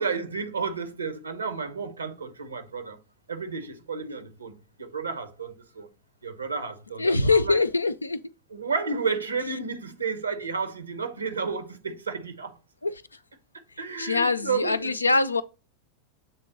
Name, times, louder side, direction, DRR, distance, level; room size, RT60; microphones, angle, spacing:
voice 1, 0.0-3.0 3.3-5.9 6.2-7.6 8.5-12.6 13.8-15.0, right 5 dB, 80° right, 1.0 m, -32 dB
voice 2, 7.0-8.2 12.8-12.9 14.0-15.4, left 3 dB, 85° left, 0.4 m, -23 dB
7.5 x 3.7 x 3.9 m
figure-of-eight pair, 90°, 0 cm